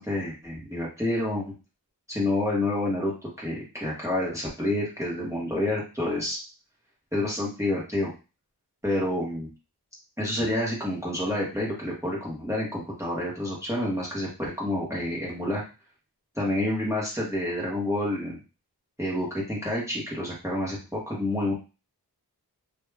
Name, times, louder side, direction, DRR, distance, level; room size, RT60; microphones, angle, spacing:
voice 1, 0.0-1.5 2.1-3.1 3.4-6.4 7.1-8.1 8.8-9.5 10.2-15.7 16.4-18.4 19.0-21.5, left 1 dB, 5° right, -5 dB, 1.2 m, -28 dB
2.7 x 2.2 x 3.3 m, 0.31 s
wide cardioid pair, 75°, 40 cm